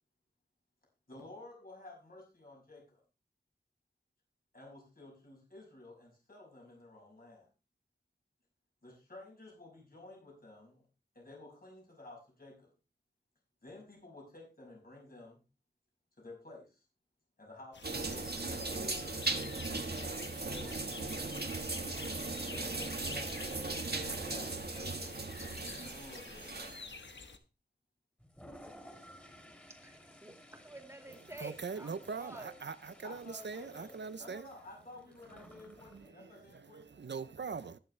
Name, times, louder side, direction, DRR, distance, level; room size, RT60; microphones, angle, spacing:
voice 1, 1.1-3.0 4.5-7.5 8.8-10.8 11.1-12.7 13.6-15.4 16.2-16.8 17.4-20.8 22.4-23.6 23.9-25.2 25.8-26.7 33.0-37.0, left 2 dB, 55° left, 6.1 m, -53 dB
sound 1, 17.7-27.4, left 4 dB, 90° left, 1.1 m, -49 dB
sound 2, 17.8-27.0, right 3 dB, 60° right, 1.7 m, -38 dB
Toilet flush, 28.2-36.1, equal, 10° left, 3.1 m, -57 dB
voice 2, 29.8-32.5, right 1 dB, 15° right, 2.4 m, -50 dB
voice 3, 31.1-34.5 35.3-37.8, right 5 dB, 85° right, 0.6 m, -43 dB
20.5 x 6.9 x 3.3 m
wide cardioid pair, 55°, 18 cm